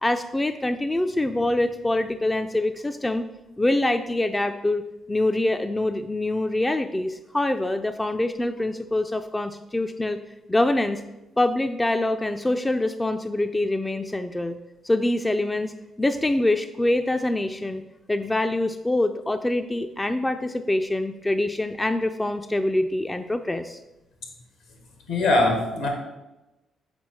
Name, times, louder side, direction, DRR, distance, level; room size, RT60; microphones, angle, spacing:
voice 1, 0.0-3.2 3.6-4.8 5.1-10.2 10.5-11.0 11.4-14.6 14.8-17.8 18.1-23.8, left 1 dB, 20° left, 8 dB, 0.4 m, -25 dB
voice 2, 25.1-25.9, left 2 dB, 80° left, 2 dB, 1.6 m, -21 dB
6.1 x 4.3 x 4.1 m, 0.99 s
hypercardioid pair, 45°, 0 cm